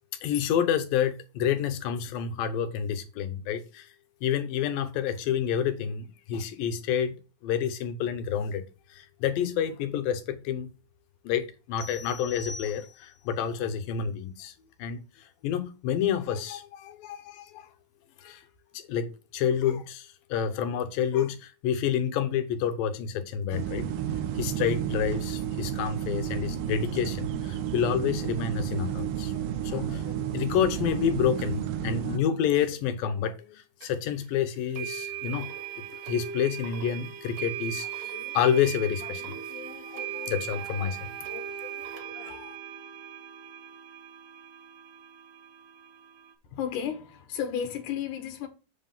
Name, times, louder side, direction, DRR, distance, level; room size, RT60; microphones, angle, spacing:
voice 1, 0.2-3.9 4.2-7.2 7.4-8.6 8.9-10.7 11.2-14.5 14.8-15.0 15.4-17.7 18.2-18.4 18.9-23.8 24.4-35.5 36.1-41.5 41.8-41.9 42.2-42.5, left 8 dB, 90° left, 2.8 m, -29 dB
sound 1, 11.8-13.3, left 4 dB, 45° left, 2.5 m, -43 dB
sound 2, 23.5-32.2, right 10 dB, 80° right, 2.4 m, -32 dB
sound 3, 33.8-33.9 34.8-46.3, right 10 dB, 60° right, 1.5 m, -39 dB
voice 2, 46.5-48.5, left 8 dB, 65° left, 2.7 m, -32 dB
8.0 x 3.8 x 5.5 m
omnidirectional pair, 4.0 m